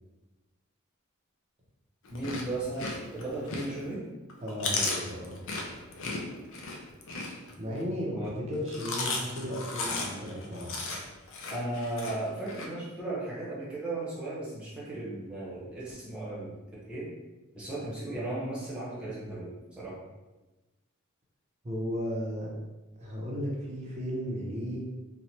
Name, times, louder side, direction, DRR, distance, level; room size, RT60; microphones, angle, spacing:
Chewing mastication, 2.0-3.9 4.3-7.8 8.5-12.7, left 3 dB, 60° left, 0.5 m, -35 dB
voice 1, 2.1-4.0 8.1-8.3 9.0-9.4 11.5-16.5 16.8-17.1 17.5-20.0, right 2 dB, 5° right, -8 dB, 1.0 m, -36 dB
voice 2, 4.4-5.4 7.6-10.8 21.6-22.5 23.0-24.8, equal, 30° right, -3 dB, 0.6 m, -35 dB
2.9 x 2.2 x 2.7 m, 1.1 s
head